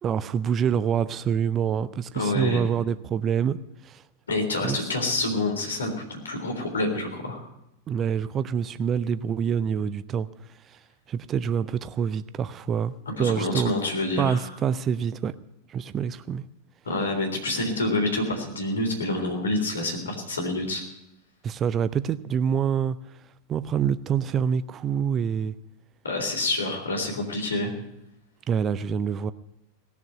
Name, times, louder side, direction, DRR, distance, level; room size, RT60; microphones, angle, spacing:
voice 1, 0.0-3.6 3.8-4.0 4.6-4.8 7.9-10.3 10.7-10.8 11.1-12.9 13.2-13.7 14.2-15.3 15.7-16.4 21.4-23.0 23.5-25.5 28.5-29.3, right 7 dB, 25° right, 0.5 m, -26 dB
voice 2, 2.1-2.6 4.3-7.5 13.2-14.5 16.8-20.8 26.0-27.7, left 2 dB, 70° left, 3.6 m, -27 dB
18.5 x 7.1 x 9.1 m
figure-of-eight pair, 90°, 0 cm